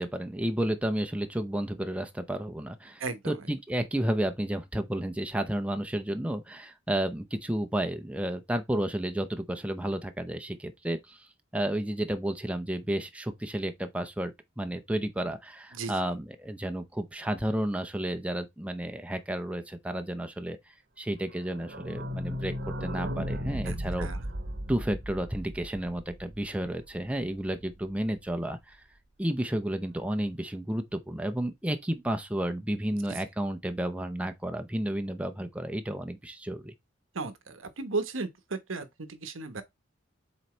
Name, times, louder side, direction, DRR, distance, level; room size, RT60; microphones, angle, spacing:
voice 1, 0.0-11.3 11.5-20.6 21.0-24.1 24.7-28.8 29.2-36.7, right 1 dB, 5° right, 0.7 m, -32 dB
voice 2, 3.0-3.4 15.7-16.0 23.6-24.3 33.1-33.2 37.1-39.6, right 3 dB, 85° right, 1.1 m, -35 dB
sound 1, 21.3-26.9 27.2-27.3 27.5-27.6 27.8-27.9, equal, 55° right, 1.1 m, -36 dB
7.6 x 4.0 x 3.2 m
head